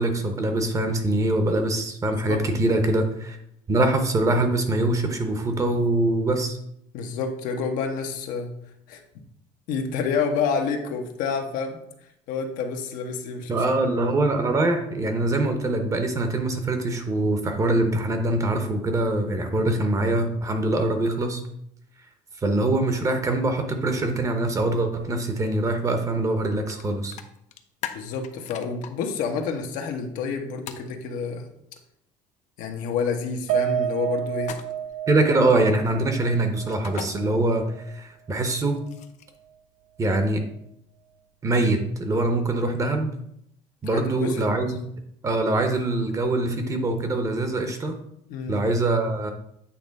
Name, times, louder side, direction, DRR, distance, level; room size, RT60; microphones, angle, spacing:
voice 1, 0.0-3.4 3.7-6.6 13.5-21.4 22.4-27.2 35.1-38.8 40.0-40.4 41.4-43.1 43.8-44.8 45.2-48.0 48.5-49.3, right 2 dB, 25° right, 6 dB, 0.9 m, -23 dB
voice 2, 2.0-2.8 6.9-8.5 8.9-9.0 9.7-11.8 12.3-13.6 19.5-19.7 27.9-31.5 32.6-34.5 43.9-44.4 48.3-48.6, left 5 dB, 80° left, 3 dB, 1.1 m, -29 dB
sound 1, 26.7-26.8 27.1-28.9 30.7-30.9 34.4-34.9 36.7-37.1 38.4-39.4, left 10 dB, 60° left, 0.7 m, -37 dB
Piano, 33.5-38.0 38.3-38.5 38.9-39.0, right 9 dB, 80° right, 0.5 m, -30 dB
8.6 x 3.3 x 5.2 m, 0.74 s
cardioid pair, 155°, 14 cm